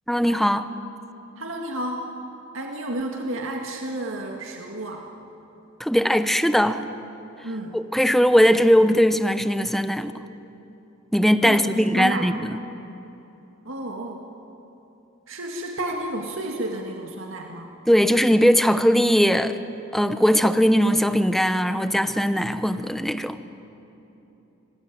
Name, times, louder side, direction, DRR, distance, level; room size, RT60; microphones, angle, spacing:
voice 1, 0.1-0.7 5.8-6.8 7.7-10.1 11.1-12.5 17.9-19.6 19.9-23.4, equal, ahead, 10 dB, 0.9 m, -19 dB
voice 2, 1.4-2.1 2.5-5.1 7.4-7.8 11.4-12.3 13.6-14.3 15.3-17.7, right 1 dB, 70° right, 1 dB, 2.2 m, -31 dB
26.0 x 19.5 x 9.4 m, 2.9 s
head